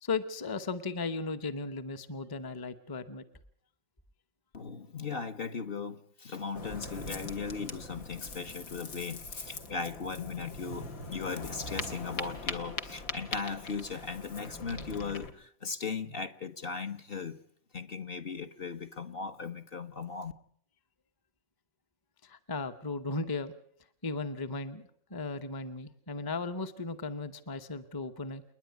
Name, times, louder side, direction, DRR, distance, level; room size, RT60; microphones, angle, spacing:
voice 1, 0.0-3.2 22.2-23.5 24.0-28.4, left 3 dB, 20° left, 0.8 m, -36 dB
voice 2, 4.5-17.4 17.7-20.3, left 5 dB, 45° left, 1.1 m, -38 dB
Ocean, 6.5-15.3, left 3 dB, 75° left, 1.9 m, -41 dB
29.0 x 10.5 x 9.3 m
omnidirectional pair, 1.5 m